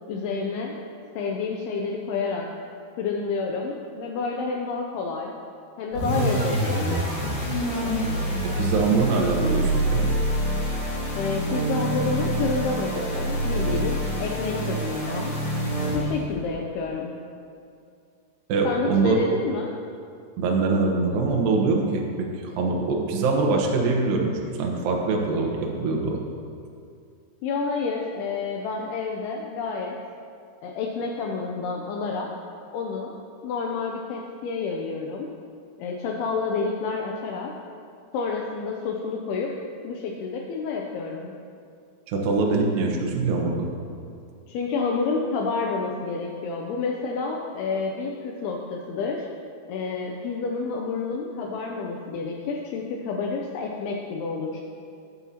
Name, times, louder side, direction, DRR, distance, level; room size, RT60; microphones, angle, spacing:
voice 1, 0.1-0.8 1.2-2.5 3.0-5.3 5.8-7.2 11.2-15.3 15.9-17.1 18.6-19.7 27.4-30.0 30.6-32.3 32.7-33.1 33.4-35.3 35.8-37.5 38.1-39.5 39.8-41.3 44.5-49.3 49.7-54.6, left 4 dB, 85° left, 0 dB, 2.2 m, -29 dB
sound 1, 5.9-16.3, right 1 dB, 45° left, 3.0 m, -26 dB
voice 2, 8.6-10.0 18.5-19.2 20.4-22.3 22.6-26.2 42.1-43.7, right 3 dB, 75° right, 0 dB, 2.1 m, -23 dB
13.0 x 9.3 x 2.9 m, 2.3 s
omnidirectional pair, 5.3 m